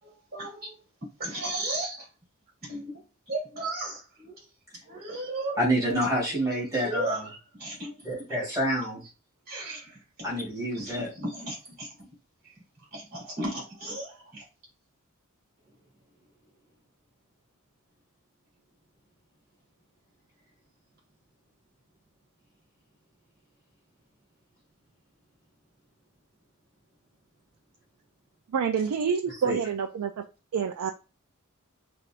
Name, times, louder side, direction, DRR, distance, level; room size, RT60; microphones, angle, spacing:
voice 1, 0.0-0.8 1.2-2.1 2.6-4.4 4.8-6.0 6.7-8.0 9.5-10.3 10.7-11.9 12.4-12.6 12.9-14.5 15.6-15.7, right 2 dB, 45° right, -4 dB, 2.6 m, -36 dB
voice 2, 5.6-7.2 8.0-9.0 10.2-11.1 29.4-29.6, equal, 15° right, -4 dB, 2.5 m, -27 dB
voice 3, 28.5-30.2 30.5-30.9, right 6 dB, 80° right, 5 dB, 0.4 m, -27 dB
5.1 x 3.3 x 2.5 m, 0.31 s
head